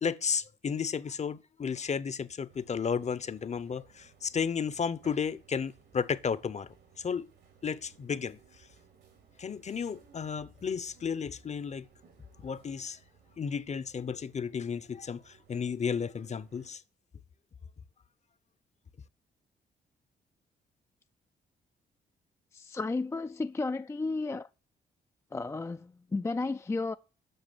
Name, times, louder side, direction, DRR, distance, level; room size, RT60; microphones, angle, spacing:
voice 1, 0.0-6.7 7.0-7.2 7.6-8.4 9.4-11.9 12.4-13.0 13.4-16.8, left 6 dB, 40° left, 0.8 m, -33 dB
sound 1, 2.5-16.7, right 6 dB, 80° right, 2.9 m, -61 dB
voice 2, 22.5-24.5 25.3-26.9, left 3 dB, 15° left, 0.4 m, -33 dB
7.9 x 6.0 x 7.2 m
supercardioid pair, 60°, 17 cm